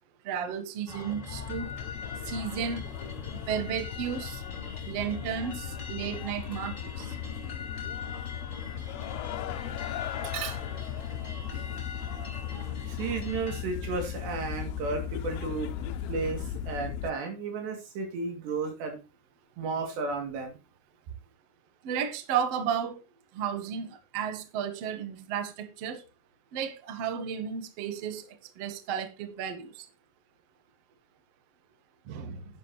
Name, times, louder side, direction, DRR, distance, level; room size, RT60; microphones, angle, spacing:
voice 1, 0.2-1.7 2.2-2.9 3.5-4.4 4.9-7.1 10.2-10.6 11.5-11.6 21.8-23.0 23.3-26.0 26.5-28.3 28.6-29.8 32.1-32.4, right 8 dB, 60° right, 1.7 m, -33 dB
sound 1, 0.9-13.6, left 4 dB, 20° left, 2.6 m, -42 dB
sound 2, 1.3-17.1, left 10 dB, 80° left, 2.4 m, -37 dB
voice 2, 12.8-19.0 19.6-20.6, right 4 dB, 90° right, 5.0 m, -33 dB
11.5 x 9.4 x 3.1 m
omnidirectional pair, 4.8 m